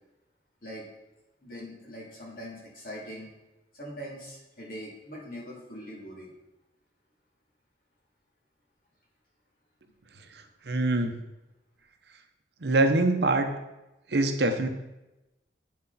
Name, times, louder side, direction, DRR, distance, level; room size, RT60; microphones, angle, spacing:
voice 1, 1.4-3.3 3.7-6.3, equal, 50° left, -4 dB, 2.8 m, -42 dB
voice 2, 10.7-11.1 12.6-13.5 14.1-14.7, right 2 dB, 65° right, 6 dB, 0.8 m, -23 dB
8.5 x 6.2 x 4.1 m, 0.99 s
head